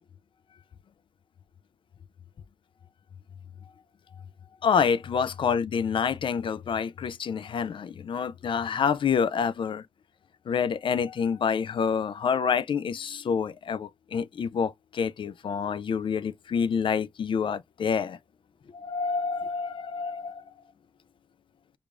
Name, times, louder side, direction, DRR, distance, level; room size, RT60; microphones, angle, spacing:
voice 1, 4.6-9.8 10.5-18.2 18.7-20.4, left 6 dB, 65° left, 0.4 m, -27 dB
4.8 x 2.4 x 2.4 m
cardioid pair, 55°, 9 cm